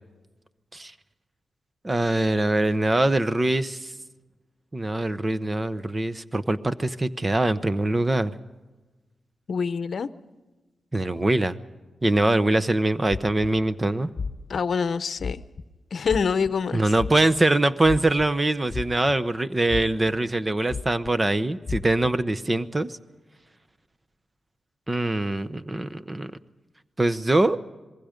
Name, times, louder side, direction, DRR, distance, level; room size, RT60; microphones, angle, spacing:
voice 1, 1.8-3.9 4.7-8.4 10.9-11.6 12.0-14.1 16.7-23.0 24.9-26.3 27.0-27.6, right 2 dB, 25° right, 13 dB, 0.9 m, -23 dB
voice 2, 9.5-10.1 14.5-15.4 15.9-16.9, left 5 dB, 65° left, 14 dB, 0.8 m, -26 dB
sound 1, 13.1-13.6 14.2-14.6 15.2-15.6 16.0-16.5 17.0-17.4 17.8-18.3 18.7-19.3 19.7-20.1 20.7-21.1 21.7-22.1, left 5 dB, 50° left, 1.2 m, -32 dB
26.5 x 21.5 x 5.2 m, 1.2 s
cardioid pair, 75°, 0 cm